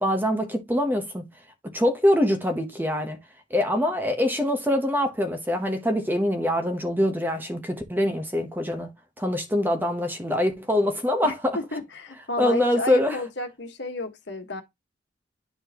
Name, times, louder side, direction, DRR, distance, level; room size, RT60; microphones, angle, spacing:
voice 1, 0.0-1.3 1.6-3.2 3.5-8.9 9.2-11.6 12.4-13.2, left 1 dB, 10° right, 1.0 m, -24 dB
voice 2, 11.2-14.6, left 2 dB, 65° left, 1.5 m, -32 dB
10.0 x 4.3 x 2.9 m
head